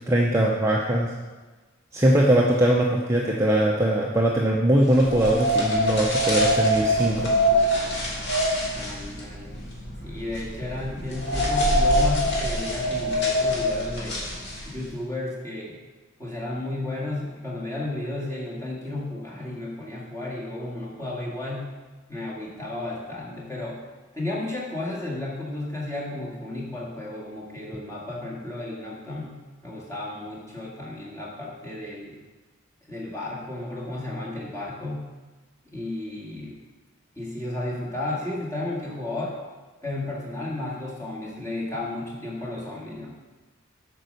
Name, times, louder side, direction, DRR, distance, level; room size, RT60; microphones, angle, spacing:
voice 1, 0.1-1.1 1.9-7.3, right 1 dB, 10° right, -3 dB, 0.6 m, -21 dB
sound 1, 4.9-14.9, equal, 50° left, 2.2 m, -24 dB
voice 2, 8.7-9.6 10.0-14.3 14.7-15.8 16.2-21.7 22.1-23.8 24.1-32.2 32.9-35.1 35.7-36.6 37.2-39.4 39.8-43.2, left 2 dB, 15° left, -4 dB, 1.9 m, -33 dB
8.7 x 5.3 x 6.5 m, 1.3 s
head